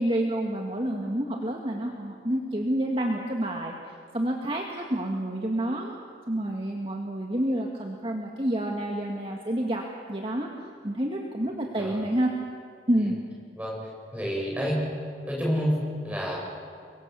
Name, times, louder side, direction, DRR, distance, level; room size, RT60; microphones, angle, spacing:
voice 1, 0.0-3.7 4.1-5.9 6.3-9.8 10.1-10.5 10.8-12.3 12.9-13.2, right 1 dB, 30° right, 1 dB, 1.8 m, -28 dB
voice 2, 14.1-14.8 15.3-15.8 16.0-16.4, equal, 10° right, -3 dB, 7.4 m, -28 dB
30.0 x 23.0 x 7.1 m, 2.3 s
head